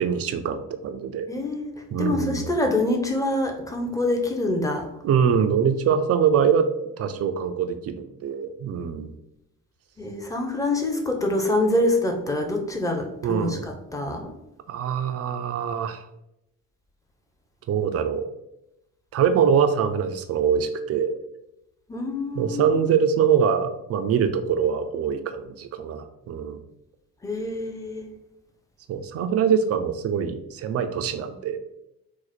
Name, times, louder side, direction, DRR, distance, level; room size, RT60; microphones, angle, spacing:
voice 1, 0.0-1.3 1.9-2.5 5.0-6.7 7.0-9.1 13.2-13.7 14.7-16.1 17.7-18.3 19.1-21.1 22.3-26.6 28.9-31.6, right 7 dB, 35° right, 8 dB, 0.4 m, -23 dB
voice 2, 1.3-1.7 2.0-4.9 10.0-14.3 21.9-22.8 27.2-28.1, left 2 dB, 5° left, 3 dB, 0.6 m, -26 dB
2.9 x 2.0 x 4.1 m, 0.86 s
hypercardioid pair, 45°, 47 cm